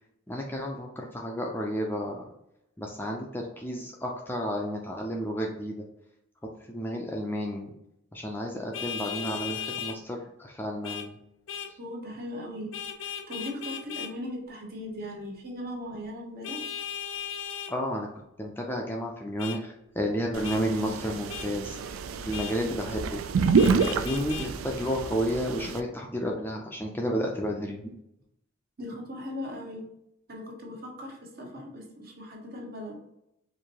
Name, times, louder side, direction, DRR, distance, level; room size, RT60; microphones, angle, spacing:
voice 1, 0.3-2.3 2.8-5.9 6.7-7.7 8.1-11.2 17.7-23.2 23.7-27.9, equal, 10° left, 0 dB, 0.4 m, -32 dB
Vehicle horn car horn honking, 8.7-10.0 10.8-11.1 11.5-11.7 12.7-14.1 16.4-17.7 19.4-19.6 20.4-20.6 21.3-21.5 22.3-22.6 23.5-24.5, left 8 dB, 75° left, 0.6 m, -36 dB
voice 2, 11.8-16.6 28.8-29.9 30.3-32.9, left 1 dB, 45° right, -1 dB, 1.0 m, -39 dB
sound 1, 20.3-25.8, right 5 dB, 85° right, 0.3 m, -28 dB
4.6 x 2.6 x 2.9 m, 0.80 s
head